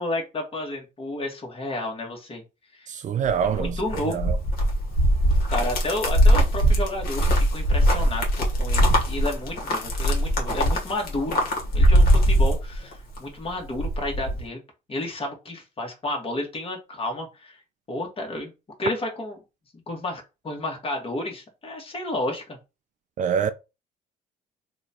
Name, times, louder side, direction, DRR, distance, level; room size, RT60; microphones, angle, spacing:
voice 1, 0.0-2.4 2.7-2.9 3.4-4.2 5.5-11.4 11.7-14.6 14.9-17.6 17.9-18.5 18.8-19.4 19.9-22.4, left 1 dB, 30° left, 1.4 m, -31 dB
voice 2, 2.9-3.8 4.1-4.4 23.2-23.5, right 7 dB, 45° right, 0.4 m, -25 dB
sound 1, 3.2-13.2 13.5-14.4, equal, 55° left, 1.3 m, -21 dB
2.9 x 2.3 x 4.1 m
cardioid pair, 100°, 18 cm